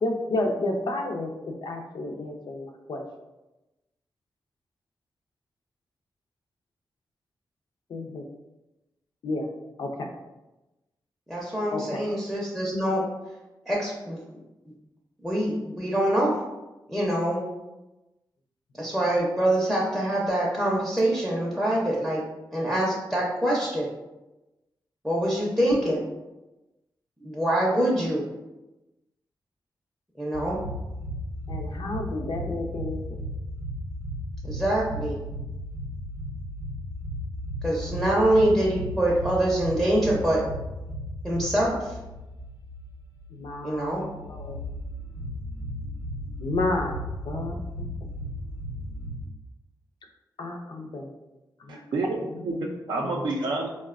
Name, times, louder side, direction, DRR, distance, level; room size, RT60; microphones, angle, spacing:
voice 1, 0.0-3.0 7.9-8.2 9.2-9.5 9.8-10.1 11.7-12.0 31.5-33.2 37.9-38.0 43.3-44.6 46.4-47.0 47.3-47.9 50.4-51.1 51.7-51.8 52.5-53.3, left 2 dB, 70° left, 3 dB, 0.5 m, -31 dB
voice 2, 11.3-13.0 13.7-14.2 15.2-16.4 16.9-17.4 18.8-22.2 22.5-23.9 25.0-26.0 27.2-28.2 30.2-30.6 34.4-35.1 37.6-40.4 41.2-41.8 43.6-44.0, right 1 dB, ahead, -5 dB, 0.5 m, -24 dB
sound 1, 30.3-49.2, equal, 90° left, 0.9 m, -35 dB
voice 3, 51.7-53.7, right 3 dB, 75° right, -1 dB, 0.3 m, -29 dB
3.9 x 2.1 x 2.4 m, 1.0 s
wide cardioid pair, 110°, 8 cm